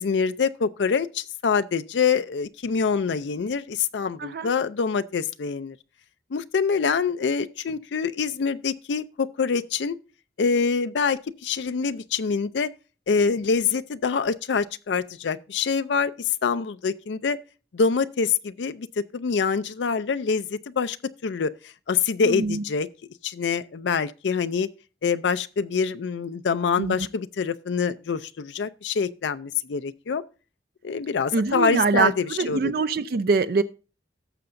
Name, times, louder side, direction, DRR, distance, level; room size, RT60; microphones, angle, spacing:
voice 1, 0.0-5.8 6.3-10.0 10.4-12.7 13.1-17.4 17.7-21.0 21.2-22.9 23.2-24.7 25.0-30.2 30.8-32.7, left 5 dB, 85° left, 0.5 m, -25 dB
voice 2, 22.2-22.6 26.8-26.9 31.3-33.6, right 4 dB, 55° right, 0.4 m, -24 dB
17.0 x 6.8 x 2.6 m
head